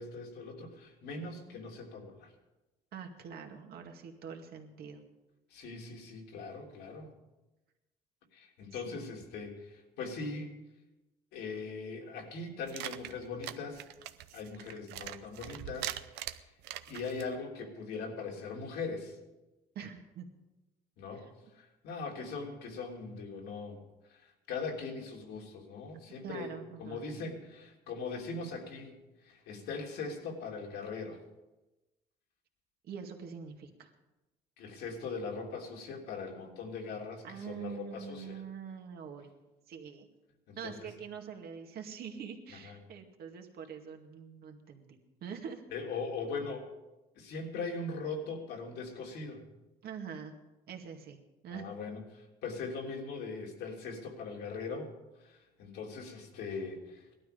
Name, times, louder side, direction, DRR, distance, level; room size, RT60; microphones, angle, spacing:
voice 1, 0.0-2.3 5.5-7.1 8.3-10.5 11.3-13.8 14.3-16.0 16.2-16.5 16.9-19.2 21.0-21.3 21.5-23.8 24.1-29.0 29.2-31.2 34.6-38.4 40.5-40.9 42.5-42.8 45.7-46.6 47.1-49.4 51.5-54.9 55.2-57.0, left 4 dB, 80° left, 0 dB, 3.1 m, -40 dB
voice 2, 2.9-5.0 8.7-9.1 19.8-20.3 21.1-21.3 26.2-27.1 32.8-33.9 37.2-40.1 40.6-45.7 49.8-50.3 50.7-51.2 51.4-51.7, right 7 dB, 65° right, 3 dB, 2.1 m, -45 dB
sound 1, 12.7-17.3, right 13 dB, 90° right, 0.7 m, -42 dB
18.0 x 12.5 x 5.2 m, 1.0 s
cardioid pair, 110°, 17 cm